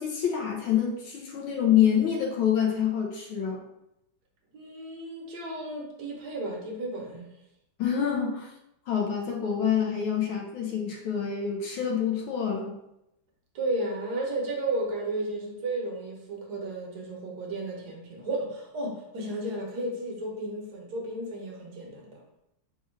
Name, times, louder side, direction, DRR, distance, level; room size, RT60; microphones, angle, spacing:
voice 1, 0.0-3.6 7.8-8.5 8.9-12.7, left 8 dB, 75° left, -1 dB, 1.5 m, -26 dB
voice 2, 4.5-7.3 13.5-22.2, right 2 dB, 60° right, -1 dB, 1.3 m, -33 dB
4.3 x 2.4 x 4.4 m, 0.84 s
omnidirectional pair, 2.3 m